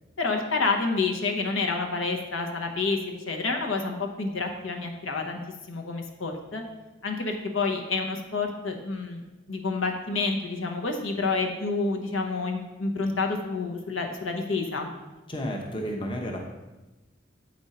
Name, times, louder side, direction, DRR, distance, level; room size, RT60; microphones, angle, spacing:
voice 1, 0.2-3.0 3.3-5.4 5.7-6.6 7.0-9.2 9.5-14.9, left 3 dB, 80° left, 3 dB, 1.0 m, -28 dB
voice 2, 15.3-16.4, equal, 25° left, 1 dB, 0.8 m, -32 dB
8.0 x 5.2 x 4.2 m, 1.1 s
head